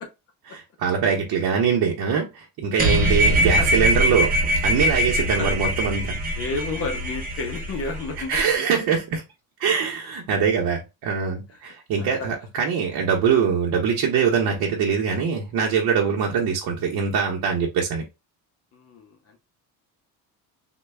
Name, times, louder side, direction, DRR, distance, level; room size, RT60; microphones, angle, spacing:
voice 1, 0.5-4.3 4.6-6.3 8.3-9.2 9.6-18.0, right 6 dB, 60° right, 0.8 m, -23 dB
sound 1, 2.8-8.4, equal, 20° right, 0.8 m, -22 dB
voice 2, 5.4-5.7 6.4-8.6 11.5-11.6 12.2-12.3 14.5-14.6 16.0-16.1 18.7-19.4, left 3 dB, 35° left, 0.6 m, -31 dB
3.2 x 2.3 x 3.3 m
cardioid pair, 155°, 40 cm